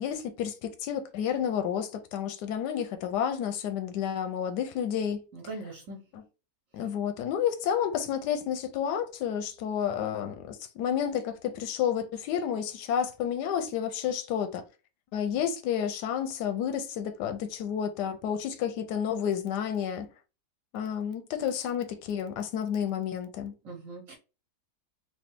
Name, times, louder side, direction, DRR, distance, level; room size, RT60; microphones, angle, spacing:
voice 1, 0.0-5.2 6.1-6.2 6.7-14.6 15.1-20.1 20.7-23.5, left 8 dB, 85° left, 1.2 m, -30 dB
voice 2, 5.3-6.0 23.6-24.2, right 2 dB, 55° right, 1.1 m, -41 dB
3.3 x 2.3 x 4.4 m
omnidirectional pair, 1.8 m